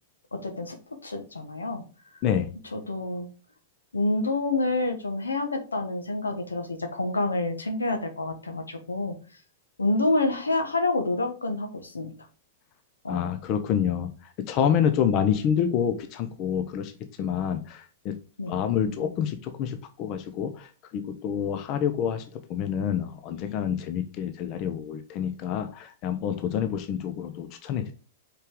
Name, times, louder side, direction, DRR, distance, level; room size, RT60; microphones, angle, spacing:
voice 1, 0.3-0.8 1.0-1.8 2.1-2.2 2.7-3.3 3.9-9.2 9.8-12.1 13.0-13.3 14.5-14.7 18.4-18.5, left 2 dB, 85° left, 6 dB, 1.2 m, -28 dB
voice 2, 13.1-14.1 14.4-16.9 17.2-18.2 18.5-27.9, left 8 dB, 40° left, 9 dB, 0.7 m, -27 dB
5.5 x 4.9 x 3.7 m, 0.36 s
figure-of-eight pair, 105°, 0 cm